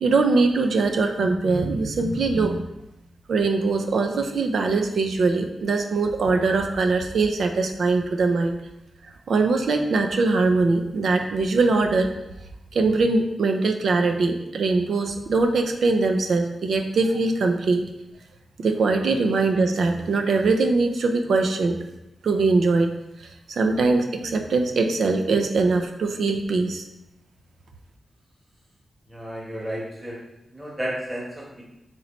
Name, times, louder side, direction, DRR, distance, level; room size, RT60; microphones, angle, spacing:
voice 1, 0.0-2.6 3.3-8.6 9.3-12.1 12.7-17.8 18.6-21.8 22.2-22.9 23.2-26.8, right 3 dB, 80° right, 5 dB, 0.4 m, -22 dB
voice 2, 29.1-30.2 30.5-31.6, equal, 15° right, -4 dB, 1.1 m, -32 dB
4.0 x 3.0 x 3.1 m, 0.88 s
cardioid pair, 85°, 0 cm